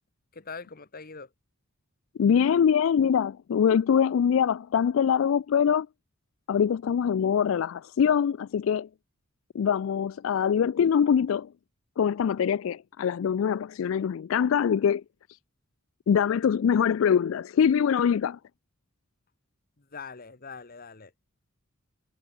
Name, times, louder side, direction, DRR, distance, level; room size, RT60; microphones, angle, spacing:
voice 1, 0.3-1.3 19.8-21.1, left 5 dB, 45° left, 1.5 m, -42 dB
voice 2, 2.2-5.9 6.5-8.9 9.5-11.5 12.0-15.0 16.1-18.4, left 7 dB, 70° left, 0.3 m, -23 dB
head